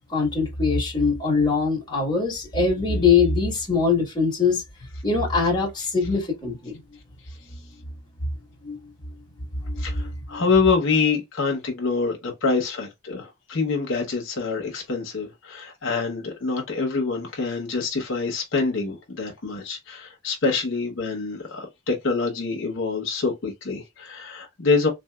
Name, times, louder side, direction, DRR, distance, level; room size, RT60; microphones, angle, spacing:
voice 1, 0.1-4.6 5.0-6.8 8.6-8.8 9.6-10.4, left 4 dB, 20° left, 1.3 m, -22 dB
voice 2, 9.8-24.9, left 4 dB, 60° left, 1.0 m, -26 dB
3.6 x 2.7 x 2.2 m
head